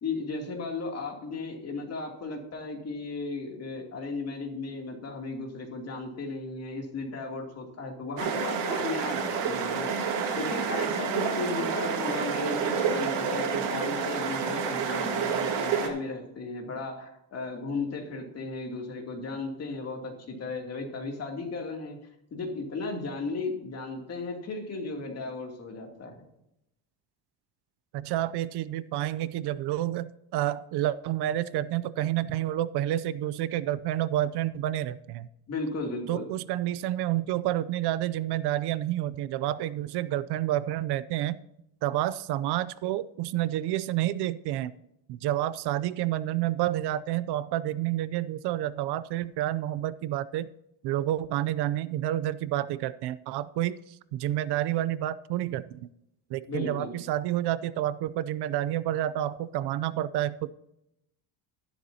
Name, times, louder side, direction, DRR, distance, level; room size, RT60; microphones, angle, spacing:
voice 1, 0.0-22.0 22.3-26.2 35.5-36.3 56.5-56.9, left 3 dB, 35° left, 1 dB, 2.8 m, -35 dB
sound 1, 8.2-15.9, right 6 dB, 90° right, 2.7 m, -29 dB
voice 2, 27.9-35.3 36.1-41.4 41.8-44.7 45.1-50.5 50.8-55.9 56.3-60.5, right 13 dB, 65° right, 16 dB, 0.6 m, -29 dB
13.0 x 11.5 x 2.8 m, 0.82 s
cardioid pair, 160°, 42 cm